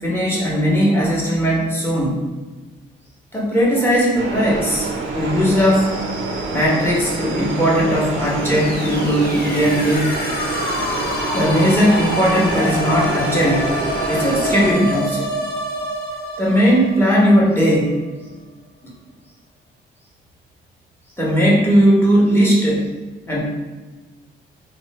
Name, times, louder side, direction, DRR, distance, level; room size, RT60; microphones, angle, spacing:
voice 1, 0.0-2.2 3.3-4.9 5.1-5.9 6.5-10.1 11.3-13.7 14.1-15.3 16.4-17.9 18.8-18.9 21.2-22.9 23.3-23.5, equal, 10° left, -5 dB, 0.9 m, -17 dB
sound 1, 4.1-14.7, right 3 dB, 75° right, 0.5 m, -26 dB
sound 2, 8.2-18.0, left 1 dB, 55° left, 0.7 m, -27 dB
3.0 x 2.1 x 3.1 m, 1.3 s
cardioid pair, 90°, 20 cm